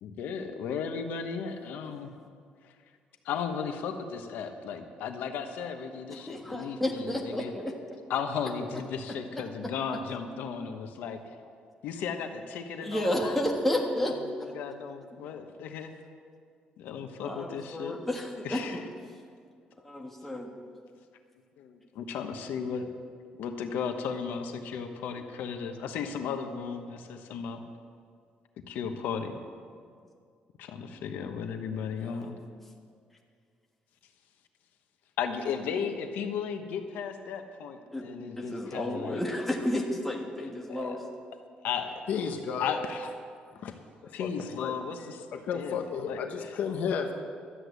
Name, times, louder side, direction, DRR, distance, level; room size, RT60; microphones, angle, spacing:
voice 1, 0.0-2.1 2.6-2.7 3.2-7.5 8.1-11.2 11.8-13.4 14.0-15.9 16.8-18.0 18.4-18.8 21.6-22.9 23.4-27.6 28.7-29.4 30.6-32.4 35.2-39.2 40.4-41.0 41.6-42.0 42.6-43.1 44.1-45.0 45.3-46.2, left 6 dB, 85° left, 6 dB, 1.1 m, -35 dB
voice 2, 6.1-7.7 12.8-14.2 17.2-18.8 19.8-20.5 31.9-32.3 37.9-38.1 38.4-41.0, left 1 dB, 5° left, 0 dB, 1.4 m, -31 dB
voice 3, 42.1-42.8 43.6-43.7 44.0-47.1, left 6 dB, 60° left, 5 dB, 0.8 m, -33 dB
12.5 x 8.2 x 8.1 m, 2.2 s
cardioid pair, 155°, 3 cm